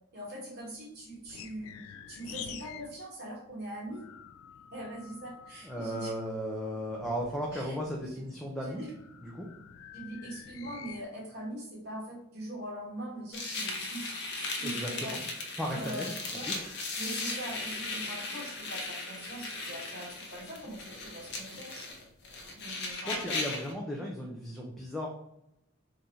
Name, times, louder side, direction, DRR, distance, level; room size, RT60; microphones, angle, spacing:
voice 1, 0.1-1.8 2.1-4.0 4.7-6.1 7.5-7.8 8.1-8.2 8.6-8.9 9.9-15.1 15.7-16.5 17.0-21.9 22.5-23.4, right 1 dB, 50° right, -3 dB, 1.5 m, -42 dB
sound 1, 0.6-3.0 3.2-6.3 6.8-11.0, left 8 dB, 75° left, 0.3 m, -49 dB
voice 2, 5.6-8.8 9.2-9.5 14.6-15.2 15.6-16.1 16.5-16.6 23.0-25.1, equal, ahead, -3 dB, 0.5 m, -35 dB
sound 2, 13.3-23.7, left 3 dB, 55° left, 0.8 m, -37 dB
3.8 x 2.6 x 4.3 m, 0.80 s
head